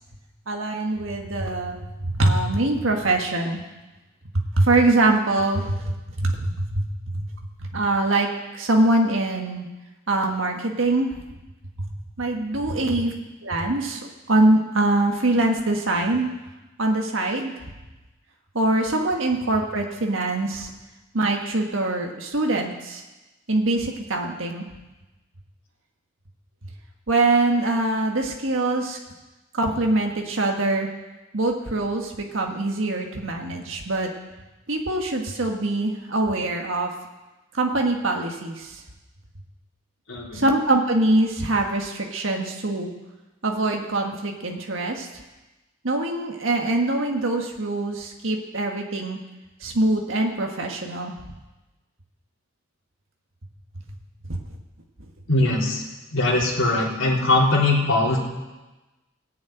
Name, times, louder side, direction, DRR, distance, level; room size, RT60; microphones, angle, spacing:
voice 1, 0.5-3.6 4.6-6.9 7.1-7.3 7.6-8.3 8.5-9.7 10.1-11.1 11.8-11.9 12.2-13.1 13.4-16.3 16.8-17.7 18.5-20.7 21.1-23.0 23.5-24.7 27.1-29.0 29.5-30.9 31.3-34.1 34.7-36.9 37.5-38.8 40.3-42.9 43.4-45.1 45.8-49.2 49.6-51.1 54.3-54.4, right 2 dB, 75° right, 2 dB, 1.6 m, -23 dB
voice 2, 40.1-40.4 55.3-55.8 56.1-58.2, left 2 dB, 75° left, -4 dB, 3.6 m, -21 dB
16.5 x 7.3 x 9.1 m, 1.1 s
head